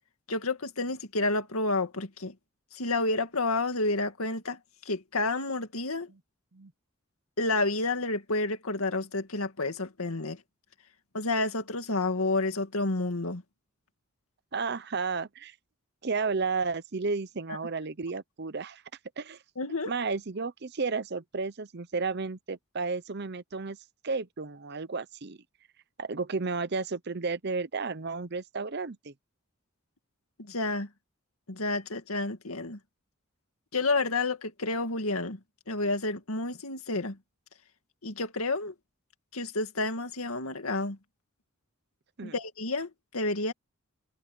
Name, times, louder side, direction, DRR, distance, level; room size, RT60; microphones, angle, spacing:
voice 1, 0.3-2.3 2.7-4.6 4.9-6.1 7.4-10.4 11.1-13.4 19.6-19.9 30.4-30.9 31.5-32.8 33.7-35.4 35.7-37.2 38.0-38.7 39.3-41.0 42.2-43.5, left 2 dB, 90° left, 2.2 m, -30 dB
voice 2, 14.5-15.5 16.0-18.8 19.2-19.4 19.8-23.8 24.0-25.4 26.0-29.1 42.2-42.4, right 4 dB, 50° right, 0.8 m, -32 dB
open air
head